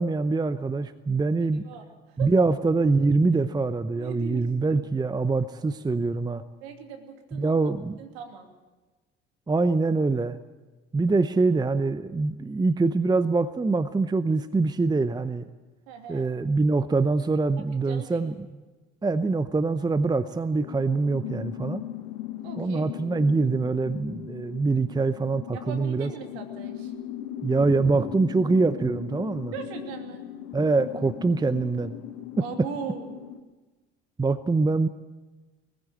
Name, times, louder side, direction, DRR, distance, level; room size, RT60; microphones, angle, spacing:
voice 1, 0.0-1.7 2.2-6.4 7.3-8.0 9.5-10.4 10.9-15.4 16.1-18.3 19.0-21.8 22.6-26.1 27.4-29.5 30.5-32.0 34.2-34.9, right 3 dB, 15° right, 13 dB, 0.7 m, -24 dB
voice 2, 4.0-4.8 6.6-7.6 8.0-8.5 15.9-16.3 17.6-18.2 22.4-22.9 25.5-26.9 29.5-30.2 32.4-33.2, right 7 dB, 70° right, 4 dB, 2.9 m, -39 dB
sound 1, 20.5-33.4, left 11 dB, 70° left, 1.2 m, -38 dB
20.5 x 15.0 x 8.7 m, 1.2 s
hypercardioid pair, 65°, 32 cm